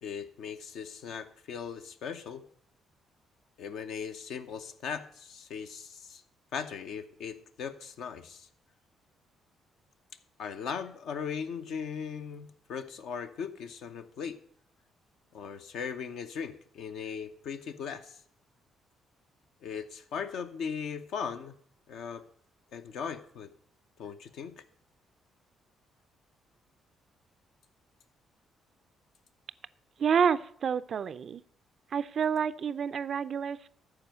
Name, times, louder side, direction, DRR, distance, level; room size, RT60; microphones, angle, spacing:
voice 1, 0.0-2.4 3.6-6.2 6.5-8.5 10.4-14.4 15.3-18.2 19.6-21.5 21.9-22.2 22.7-23.5 24.0-24.6, left 6 dB, 65° left, 7 dB, 0.8 m, -38 dB
voice 2, 30.0-31.4 31.9-33.7, right 7 dB, 50° right, 16 dB, 0.4 m, -28 dB
13.5 x 4.8 x 7.7 m, 0.62 s
figure-of-eight pair, 45°, 0 cm